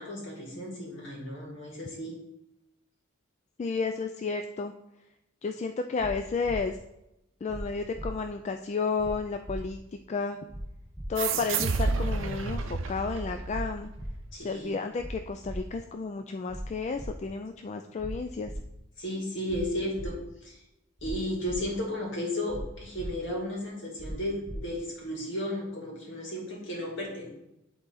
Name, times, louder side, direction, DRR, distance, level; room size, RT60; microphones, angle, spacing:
voice 1, 0.0-2.2 14.3-14.8 19.0-20.6 21.0-27.3, left 1 dB, 65° left, -2 dB, 2.4 m, -34 dB
voice 2, 3.6-4.7 5.4-6.8 7.4-9.8 10.1-10.4 11.1-13.9 14.4-18.5, left 4 dB, 35° left, 7 dB, 0.3 m, -32 dB
sound 1, 6.0-6.1 6.4-6.6 7.5-7.6 7.9-8.1 9.0-9.1 9.4-9.6 10.5-10.6 10.9-11.1 12.0-12.1 12.4-12.6 13.5-13.6 13.9-14.1 15.0-15.1 15.4-15.6 16.5-16.6 16.9-17.1 18.0-18.1 18.4-18.6 19.5-19.6 19.9-20.1 21.0-21.1 21.4-21.6 22.5-22.6 22.9-23.1 24.0-24.1 24.4-24.6, right 1 dB, 5° right, 0.9 m, -39 dB
sound 2, 11.2-14.2, right 4 dB, 70° right, 0.6 m, -30 dB
10.5 x 3.8 x 4.0 m, 0.88 s
head